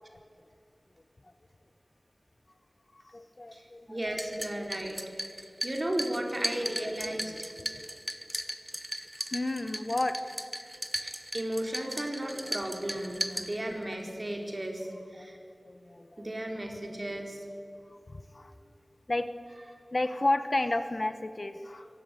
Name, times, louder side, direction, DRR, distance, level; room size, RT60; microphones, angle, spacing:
voice 1, 2.9-3.9 4.5-4.6 6.2-6.3 7.1-7.2 7.7-7.8 9.3-10.2 11.8-12.0 15.2-16.3 18.3-18.5 19.1-19.3 19.9-21.9, left 2 dB, 50° left, 10 dB, 1.2 m, -32 dB
voice 2, 3.5-5.0 5.3-7.5 11.0-15.4 16.2-17.4, right 1 dB, 40° right, 2 dB, 4.3 m, -35 dB
sound 1, 4.0-14.0, right 1 dB, 20° right, 1.2 m, -38 dB
23.0 x 18.5 x 9.2 m, 2.5 s
wide cardioid pair, 50°, 0 cm